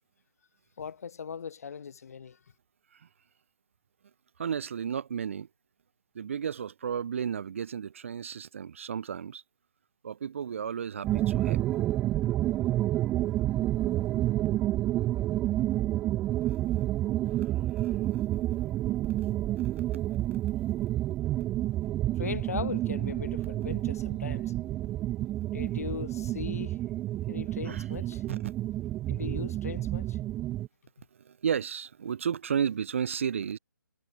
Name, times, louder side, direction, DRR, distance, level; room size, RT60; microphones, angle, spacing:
voice 1, 0.8-2.4 22.2-24.5 25.5-26.8 27.3-28.2 29.1-30.2, left 6 dB, 45° left, 5.4 m, -39 dB
voice 2, 4.4-5.5 6.1-9.4 10.0-11.6 16.4-16.6 17.3-17.5 17.8-18.3 19.6-20.0 27.7-27.8 28.3-28.5 31.2-33.6, right 7 dB, 35° right, 1.0 m, -33 dB
sound 1, 11.0-30.7, right 14 dB, 5° right, 0.3 m, -29 dB
hypercardioid pair, 165°, 11 cm